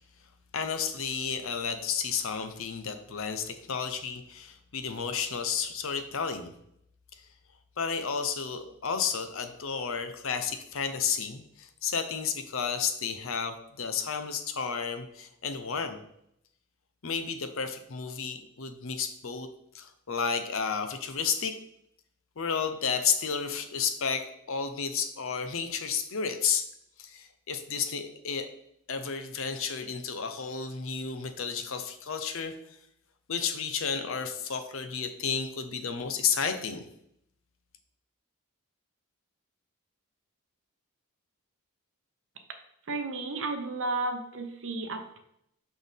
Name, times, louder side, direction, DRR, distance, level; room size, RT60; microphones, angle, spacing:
voice 1, 0.5-6.5 7.8-16.0 17.0-19.5 19.7-21.6 22.4-26.7 27.0-28.5 28.9-32.5 33.3-36.9, left 6 dB, 60° left, 8 dB, 0.7 m, -32 dB
voice 2, 42.9-45.2, right 3 dB, 60° right, 6 dB, 0.9 m, -33 dB
6.2 x 6.0 x 3.5 m, 0.74 s
head